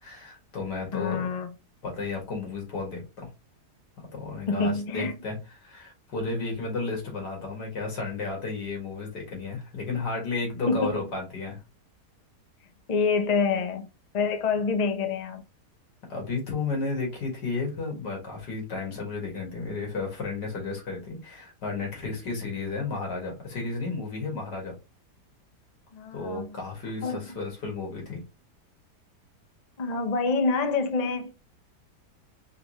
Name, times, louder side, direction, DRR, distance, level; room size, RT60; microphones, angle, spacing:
voice 1, 0.0-1.3 1.8-3.3 4.0-11.6 16.1-24.7 26.1-28.2, left 3 dB, 85° left, 2.5 m, -33 dB
voice 2, 0.9-1.5 4.5-5.1 10.7-11.0 12.9-13.9 14.1-15.4 25.9-26.5 27.0-27.4 29.8-31.3, left 4 dB, 50° left, 0.4 m, -26 dB
5.0 x 3.2 x 3.0 m
omnidirectional pair, 1.7 m